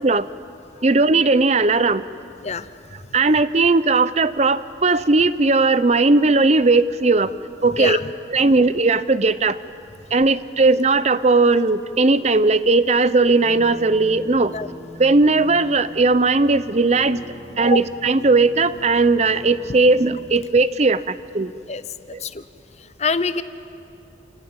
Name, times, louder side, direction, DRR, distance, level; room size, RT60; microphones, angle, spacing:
voice 1, 0.8-2.1 3.1-7.3 7.6-8.0 8.3-9.6 10.1-14.6 15.0-17.2 17.6-21.5 22.1-22.2, right 3 dB, 35° right, 15 dB, 0.6 m, -17 dB
sound 1, 13.4-20.4, left 1 dB, 60° right, 3.1 m, -41 dB
voice 2, 23.0-23.4, left 4 dB, 35° left, 13 dB, 0.7 m, -24 dB
29.0 x 17.5 x 8.8 m, 2.7 s
head